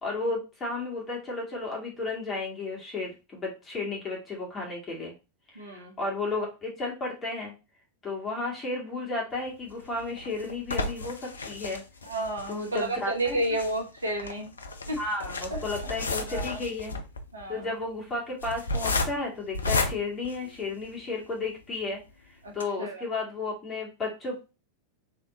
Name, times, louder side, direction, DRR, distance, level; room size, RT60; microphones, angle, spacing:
voice 1, 0.0-5.1 5.5-7.5 8.0-11.8 12.5-13.6 14.9-16.9 17.5-22.0 22.5-24.6, left 3 dB, 20° left, -2 dB, 2.2 m, -33 dB
voice 2, 5.6-5.9 12.1-14.5 14.9-15.0 16.3-16.6 17.3-17.7 22.4-22.5 22.8-23.0, right 1 dB, 75° right, 2 dB, 1.3 m, -31 dB
sound 1, 9.7-21.1 21.6-21.7 22.0-22.1 22.5-22.6, left 3 dB, 75° left, 0.6 m, -33 dB
3.6 x 3.5 x 4.1 m, 0.30 s
figure-of-eight pair, 90°, 0 cm